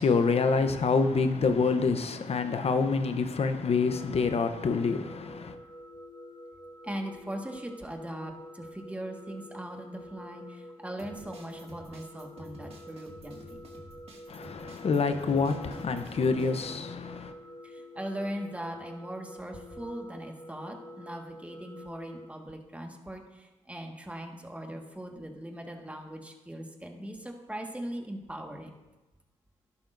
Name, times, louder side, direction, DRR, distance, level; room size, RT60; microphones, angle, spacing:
voice 1, 0.0-5.5 14.3-17.3, left 4 dB, 55° left, 0.9 m, -27 dB
sound 1, 3.8-22.3, left 1 dB, 30° left, 1.6 m, -48 dB
voice 2, 6.8-13.6 16.3-16.4 17.6-28.7, right 1 dB, 10° right, 1.7 m, -40 dB
sound 2, 11.0-16.5, right 1 dB, 50° right, 2.2 m, -50 dB
11.5 x 11.0 x 2.7 m
supercardioid pair, 55°, 13 cm